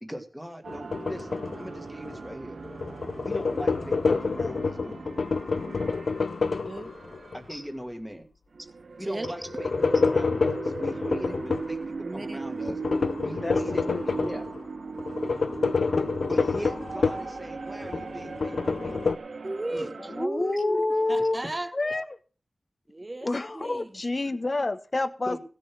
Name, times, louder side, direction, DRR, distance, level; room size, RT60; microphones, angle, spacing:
voice 1, 0.0-2.6 3.2-5.1 7.3-8.3 9.0-12.8 13.2-14.5 16.3-19.0 19.7-19.9 21.2-21.3 25.3-25.4, equal, ahead, 1.6 m, -40 dB
sound 1, 0.6-7.7 8.5-20.3, right 4 dB, 75° right, 0.6 m, -39 dB
sound 2, 0.7-2.3 2.6-7.4 9.2-11.8 12.6-14.6 15.0-17.4 17.8-19.2, left 4 dB, 80° left, 0.7 m, -28 dB
voice 2, 6.6-6.9 8.6-8.7 9.0-9.3 11.2-11.4 12.0-12.4 19.4-21.7 22.9-24.0, right 2 dB, 30° right, 1.1 m, -35 dB
voice 3, 20.1-21.4 21.7-22.0 23.2-25.4, left 2 dB, 40° left, 0.9 m, -28 dB
15.5 x 6.8 x 6.0 m
wide cardioid pair, 80°, 0 cm